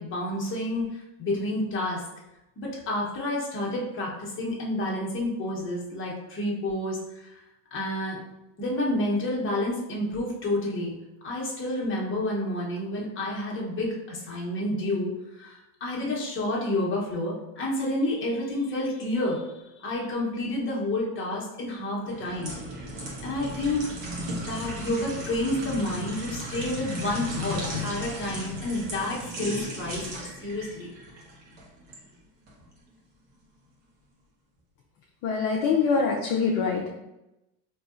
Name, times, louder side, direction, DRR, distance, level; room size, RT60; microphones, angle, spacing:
voice 1, 0.0-2.0 2.6-7.4 7.7-8.2 8.6-10.9 11.2-19.5 19.8-22.5 23.2-23.8 24.4-30.9, left 1 dB, 25° left, -3 dB, 1.0 m, -29 dB
sound 1, 22.1-32.0 32.5-32.7, equal, 60° right, 1.3 m, -36 dB
voice 2, 35.2-36.9, left 5 dB, 45° left, -1 dB, 0.5 m, -24 dB
3.7 x 2.8 x 2.5 m, 0.94 s
supercardioid pair, 120°, 47 cm